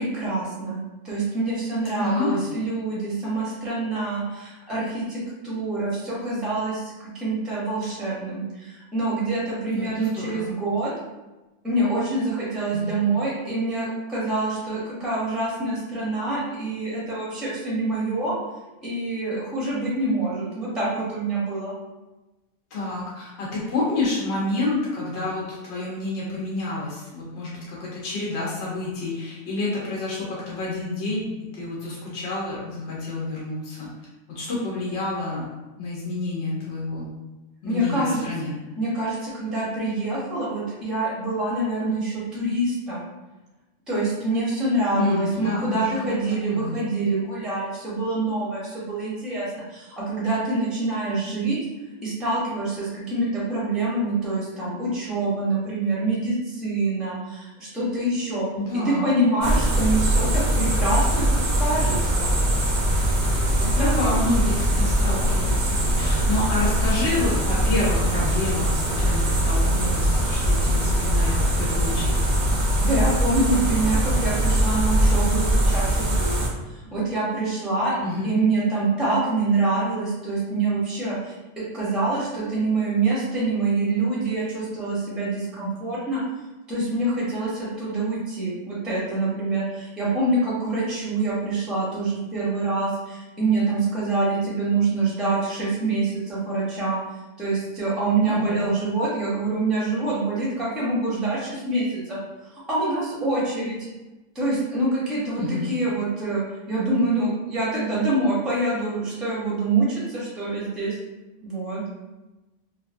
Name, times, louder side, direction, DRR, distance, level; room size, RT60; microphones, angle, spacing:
voice 1, 0.0-10.9 11.6-18.3 18.8-21.7 37.7-38.2 38.8-43.0 43.9-51.6 52.0-62.3 63.5-64.1 72.8-76.3 76.7-77.9 78.2-86.2 86.7-97.0 97.4-102.2 102.5-103.8 104.3-106.4 106.7-111.0 111.4-111.8, right 2 dB, ahead, -6 dB, 0.6 m, -26 dB
voice 2, 2.0-2.4 9.7-10.5 12.7-12.9 22.7-33.9 34.3-35.4 35.8-37.1 37.6-38.5 45.0-46.1 46.5-46.7 58.6-59.1 63.6-65.7 66.0-72.2 78.0-78.3 98.3-98.7 105.4-105.7, left 2 dB, 75° left, -6 dB, 1.0 m, -28 dB
sound 1, 59.4-76.5, right 1 dB, 50° right, 0.6 m, -22 dB
2.8 x 2.4 x 2.5 m, 1.1 s
omnidirectional pair, 1.2 m